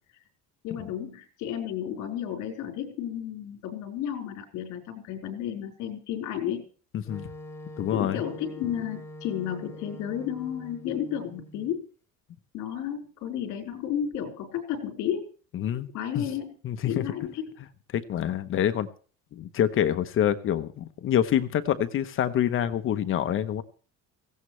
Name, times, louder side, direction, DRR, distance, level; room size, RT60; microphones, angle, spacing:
voice 1, 0.6-6.6 7.9-11.8 12.5-15.3 15.9-16.5 16.8-17.6, left 9 dB, 65° left, 4 dB, 4.5 m, -32 dB
voice 2, 6.9-7.3 7.8-8.2 15.5-15.9 16.1-16.2 16.6-17.0 17.9-18.9 19.3-23.6, left 10 dB, 40° left, 11 dB, 0.9 m, -26 dB
Wind instrument woodwind instrument, 7.1-11.8, left 1 dB, 10° left, 2.2 m, -44 dB
17.5 x 16.5 x 3.3 m, 0.41 s
cardioid pair, 165°, 31 cm